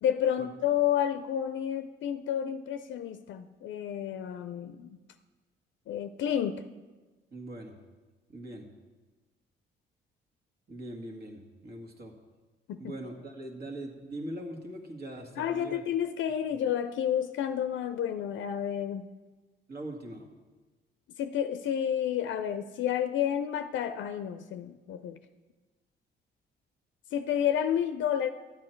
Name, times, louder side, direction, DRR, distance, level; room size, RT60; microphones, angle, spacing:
voice 1, 0.0-5.0 5.9-6.6 12.7-12.9 15.4-19.0 21.2-25.2 27.1-28.3, left 9 dB, 70° left, 10 dB, 0.5 m, -30 dB
voice 2, 7.3-7.8 8.3-8.7 10.7-12.1 12.8-15.8 19.7-20.3, right 1 dB, 55° right, 1 dB, 1.9 m, -41 dB
12.5 x 8.6 x 4.5 m, 1.3 s
cardioid pair, 90°, 20 cm